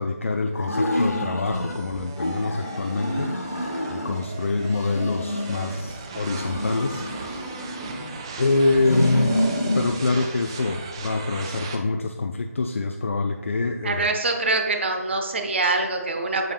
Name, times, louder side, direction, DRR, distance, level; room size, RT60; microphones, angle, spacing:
voice 1, 0.0-3.3 3.9-7.0 8.4-9.4 9.7-14.1, left 3 dB, 55° left, 4 dB, 0.4 m, -25 dB
sound 1, 0.5-1.8 2.2-4.2 4.6-5.9 6.3-8.2 8.7-9.9, left 1 dB, 75° left, 1.0 m, -28 dB
sound 2, 1.5-11.8, right 4 dB, 20° right, 0.4 m, -38 dB
voice 2, 13.8-16.5, right 3 dB, 45° right, 4 dB, 0.9 m, -24 dB
7.8 x 6.5 x 2.3 m, 1.2 s
figure-of-eight pair, 150°, 8 cm